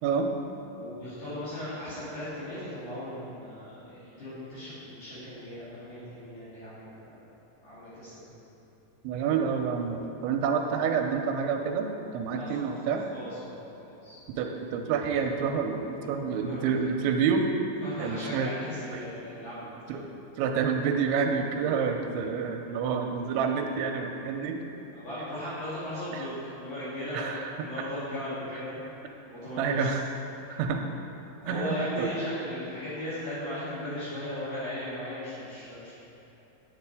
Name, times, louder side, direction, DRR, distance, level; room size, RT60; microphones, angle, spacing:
voice 1, 0.7-7.2 7.6-8.3 12.3-14.2 16.4-16.7 17.8-19.7 24.9-27.3 27.6-28.8 29.3-29.9 31.4-35.9, left 1 dB, 55° left, -13 dB, 4.2 m, -37 dB
voice 2, 9.0-13.0 14.3-17.5 17.8-18.5 18.9-19.0 19.9-20.1 20.4-24.6 27.1-27.4 29.6-30.0 30.5-30.8 31.5-32.1, right 6 dB, 90° right, 4 dB, 3.0 m, -28 dB
9.7 x 8.8 x 4.8 m, 3.0 s
omnidirectional pair, 5.3 m